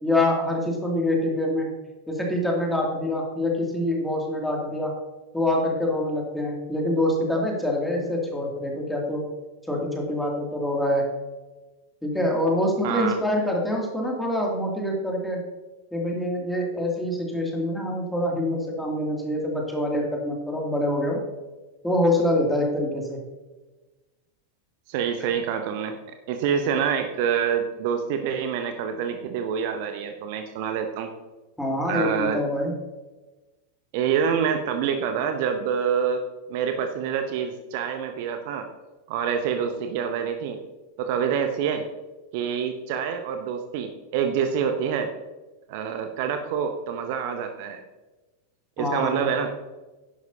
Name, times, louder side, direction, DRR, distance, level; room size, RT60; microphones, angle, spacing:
voice 1, 0.0-1.7 2.1-4.9 5.3-9.2 9.7-11.0 12.0-15.4 15.9-21.2 21.8-23.2 31.6-32.7 48.8-49.3, left 1 dB, 5° left, -1 dB, 2.6 m, -25 dB
voice 2, 12.8-13.2 24.9-26.0 26.3-31.1 31.9-32.4 33.9-36.2 36.5-38.7 39.1-40.6 41.0-41.9 42.3-45.1 45.7-47.8 48.8-49.5, right 7 dB, 50° right, 6 dB, 0.8 m, -26 dB
11.5 x 11.0 x 2.8 m, 1.2 s
figure-of-eight pair, 90°, 0 cm